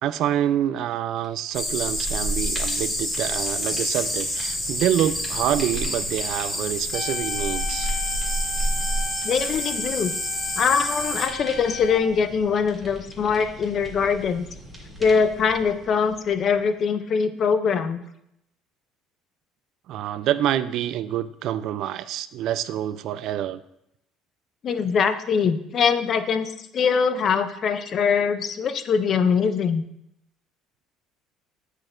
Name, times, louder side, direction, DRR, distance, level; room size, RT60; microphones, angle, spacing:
voice 1, 0.0-7.9 19.9-23.6, right 11 dB, 55° right, 14 dB, 0.3 m, -26 dB
sound 1, 1.2-1.5 1.8-16.8, right 1 dB, 5° right, 1.6 m, -43 dB
sound 2, 1.5-11.3, equal, 15° left, 1.3 m, -27 dB
sound 3, 6.9-12.0, left 5 dB, 65° left, 1.0 m, -36 dB
voice 2, 9.2-10.1 10.6-14.5 15.0-18.0 24.6-29.8, left 6 dB, 35° left, 10 dB, 0.5 m, -22 dB
8.5 x 6.3 x 2.5 m, 0.78 s
cardioid pair, 150°, 0 cm